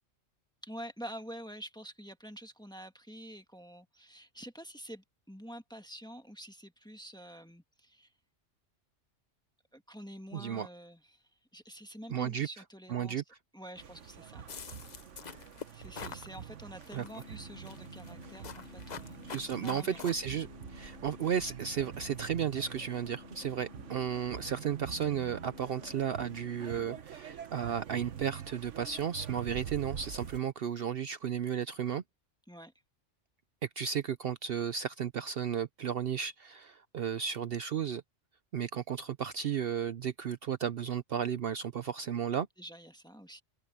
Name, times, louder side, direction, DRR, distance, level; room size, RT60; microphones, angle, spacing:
voice 1, 0.6-8.1 9.7-13.2 13.5-14.5 15.7-20.0 32.5-32.7 42.6-43.4, equal, 5° left, 1.4 m, -48 dB
voice 2, 10.3-10.7 12.1-12.5 12.9-13.2 16.9-17.1 19.2-32.0 33.8-38.0 38.5-42.5, right 8 dB, 60° right, 0.8 m, -34 dB
sound 1, 13.8-30.4, right 8 dB, 80° right, 1.4 m, -46 dB
sound 2, 14.5-16.3 16.8-17.3 17.7-20.1, left 6 dB, 40° left, 0.8 m, -45 dB
sound 3, 17.0-27.0, left 6 dB, 70° left, 1.3 m, -53 dB
open air
omnidirectional pair, 1.2 m